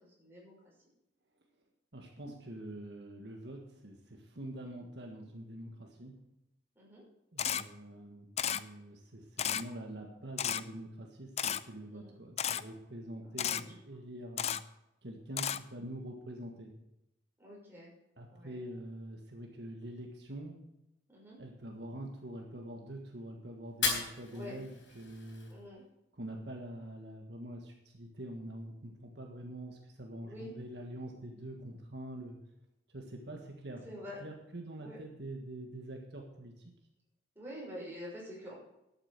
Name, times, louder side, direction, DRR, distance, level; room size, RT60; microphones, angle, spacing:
voice 1, 0.2-0.7 6.8-7.0 11.7-12.2 13.2-14.0 17.4-17.9 18.3-18.6 21.1-21.4 24.3-24.6 25.5-25.8 30.2-30.6 33.8-34.2 34.8-35.0 37.4-38.5, equal, 10° right, -5 dB, 5.9 m, -47 dB
voice 2, 1.9-6.1 7.3-14.6 15.0-16.7 18.2-20.5 21.4-24.7 24.9-25.5 26.2-32.4 32.9-33.8 34.2-36.5, right 1 dB, 65° right, 1 dB, 1.7 m, -45 dB
Camera, 7.4-7.6 8.4-8.6 9.4-9.6 10.4-10.6 11.4-11.6 12.4-12.6 13.4-13.6 14.4-14.6 15.4-15.6, left 9 dB, 35° left, 0.4 m, -32 dB
Fire, 23.7-25.7, left 5 dB, 80° left, 4.1 m, -36 dB
12.0 x 8.9 x 6.6 m, 0.87 s
head